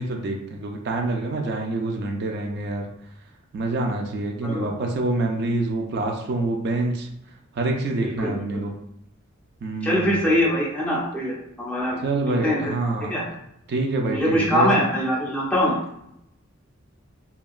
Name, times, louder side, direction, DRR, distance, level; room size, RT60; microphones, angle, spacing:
voice 1, 0.0-2.9 3.5-7.1 7.5-8.7 9.6-10.2 12.0-13.2 13.7-14.7, right 2 dB, 55° right, 2 dB, 0.3 m, -26 dB
voice 2, 8.0-8.6 9.8-12.6 13.1-13.2 14.0-15.8, equal, 5° left, -5 dB, 0.6 m, -23 dB
2.8 x 2.2 x 2.3 m, 0.77 s
head